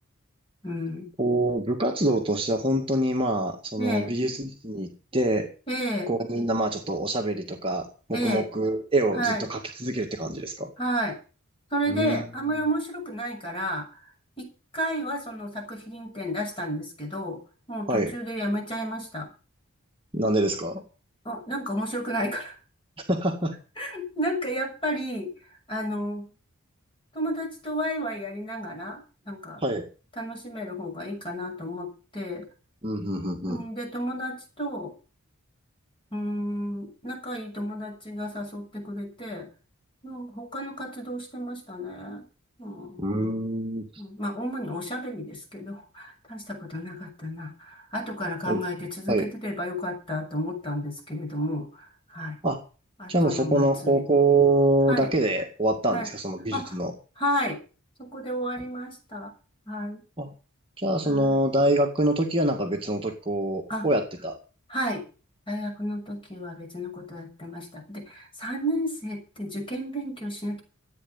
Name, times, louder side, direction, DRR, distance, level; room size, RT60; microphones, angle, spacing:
voice 1, 0.6-1.1 3.8-4.2 5.7-6.1 8.1-8.5 9.1-9.5 10.8-11.2 11.7-14.1 14.4-17.4 17.7-19.3 20.5-20.6 21.2-22.5 23.8-25.3 25.7-26.3 27.1-29.6 30.2-32.5 33.5-34.9 36.1-39.5 40.0-42.2 42.6-43.0 44.0-52.4 53.0-54.0 54.9-55.1 55.9-56.1 56.5-56.8 57.2-57.6 58.0-59.3 59.7-60.0 61.0-61.3 63.7-63.9 64.7-65.0 65.5-70.6, equal, 25° left, 3 dB, 6.5 m, -32 dB
voice 2, 1.2-5.5 6.1-10.7 11.9-12.2 17.9-18.1 20.1-20.8 23.1-23.6 29.6-29.9 32.8-33.6 43.0-43.8 48.5-48.6 49.1-49.3 52.4-52.6 53.1-56.9 60.2-60.3 60.8-64.4, right 1 dB, 25° right, 2 dB, 2.0 m, -25 dB
14.5 x 9.4 x 7.2 m, 0.35 s
head